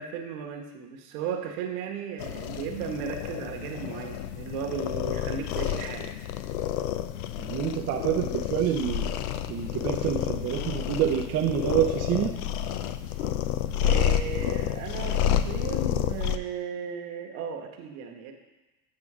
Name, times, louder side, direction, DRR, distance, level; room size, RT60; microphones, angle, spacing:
voice 1, 0.0-6.1 13.2-13.3 13.8-18.3, right 7 dB, 70° right, 2 dB, 1.4 m, -35 dB
sound 1, 2.2-16.4, left 10 dB, 80° left, 0.6 m, -30 dB
voice 2, 7.4-9.1 9.5-12.3, right 10 dB, 35° right, 3 dB, 0.6 m, -27 dB
8.8 x 3.8 x 6.0 m, 1.1 s
supercardioid pair, 120°, 44 cm